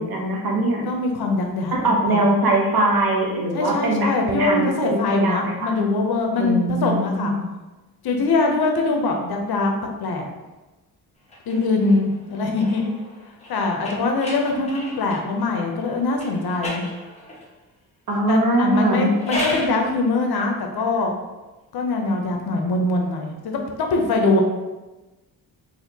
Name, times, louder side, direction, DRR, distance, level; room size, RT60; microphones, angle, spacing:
voice 1, 0.0-0.9 1.7-4.6 5.1-5.7 6.4-7.5 18.1-19.1, right 1 dB, 65° right, -1 dB, 0.9 m, -21 dB
voice 2, 0.8-1.7 2.1-2.2 3.5-7.3 8.0-9.7 10.0-10.3 11.5-12.9 13.5-16.9 18.3-21.1 21.7-24.4, left 3 dB, 75° left, 2 dB, 0.7 m, -22 dB
sound 1, 11.2-15.3 16.1-17.5 18.9-19.8, left 1 dB, 15° left, 1.0 m, -34 dB
4.1 x 2.5 x 2.7 m, 1.1 s
wide cardioid pair, 120°, 38 cm